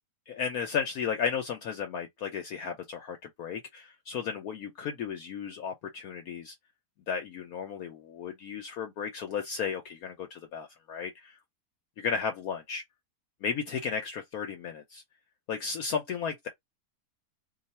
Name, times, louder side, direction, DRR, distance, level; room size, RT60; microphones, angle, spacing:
voice 1, 0.3-6.5 7.1-11.4 12.0-12.8 13.4-15.0 15.5-16.5, left 6 dB, 65° left, 1.1 m, -34 dB
2.6 x 2.4 x 4.1 m
omnidirectional pair, 1.8 m